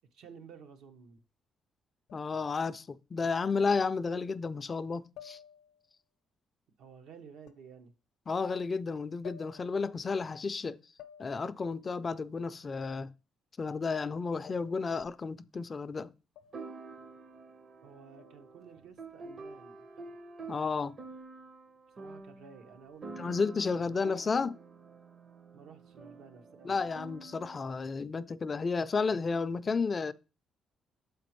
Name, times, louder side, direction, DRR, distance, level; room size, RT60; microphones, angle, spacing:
voice 1, 0.1-1.2 6.8-7.9 17.8-19.8 22.0-23.4 23.7-23.8 25.5-26.9, right 6 dB, 85° right, 0.8 m, -53 dB
voice 2, 2.1-5.4 8.3-10.8 11.2-13.1 13.6-16.1 20.5-21.0 23.2-24.6 26.6-30.1, left 4 dB, 35° left, 0.3 m, -32 dB
sound 1, 5.2-5.9 7.5-7.7 9.2-9.9 11.0-11.7 14.5-15.0 16.4-16.8 18.2-18.6, left 10 dB, 85° left, 0.6 m, -54 dB
sound 2, 15.0-15.1 16.5-27.7, right 3 dB, 45° right, 0.6 m, -48 dB
7.0 x 5.0 x 3.0 m
cardioid pair, 90°, 0 cm